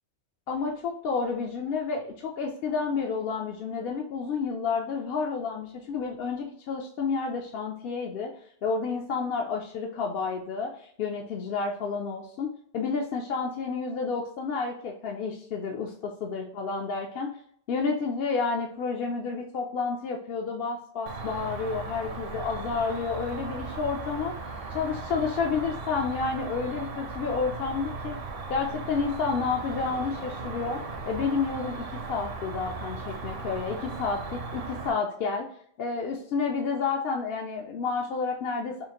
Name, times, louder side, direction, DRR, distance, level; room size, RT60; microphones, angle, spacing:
voice 1, 0.5-8.3 8.6-17.4 17.7-24.3 24.7-28.2 28.5-35.5 35.8-38.9, left 5 dB, 65° left, 1 dB, 0.7 m, -30 dB
Cricket, 21.1-34.9, right 3 dB, 60° right, 0.9 m, -37 dB
5.5 x 2.5 x 2.9 m, 0.62 s
omnidirectional pair, 1.2 m